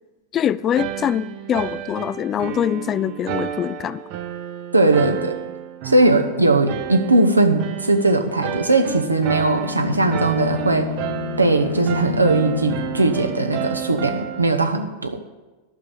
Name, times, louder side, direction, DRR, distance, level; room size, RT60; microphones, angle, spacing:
voice 1, 0.3-4.0, left 9 dB, 30° left, 17 dB, 0.3 m, -23 dB
sound 1, 0.8-14.4, right 10 dB, 45° right, 0.8 m, -31 dB
voice 2, 4.7-5.4 5.8-10.9 11.4-15.2, right 2 dB, 80° right, 6 dB, 1.0 m, -19 dB
Bowed string instrument, 9.5-13.7, left 8 dB, 75° left, 1.4 m, -30 dB
11.5 x 6.7 x 7.5 m, 1.2 s
figure-of-eight pair, 90°, 0 cm